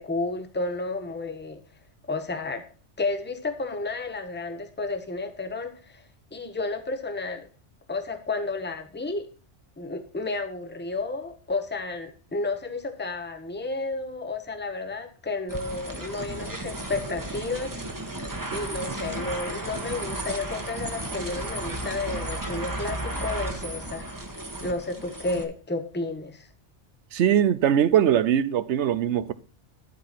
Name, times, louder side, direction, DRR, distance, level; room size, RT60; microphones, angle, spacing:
voice 1, 0.0-1.6 2.1-2.6 3.0-6.0 6.3-7.5 7.9-9.3 9.8-17.8 18.5-24.1 24.6-26.5, left 3 dB, 10° left, 0.9 m, -32 dB
sound 1, 15.5-25.4, right 1 dB, 20° right, 1.1 m, -34 dB
voice 2, 27.1-29.3, right 10 dB, 80° right, 0.9 m, -21 dB
12.0 x 4.6 x 5.8 m
omnidirectional pair, 1.2 m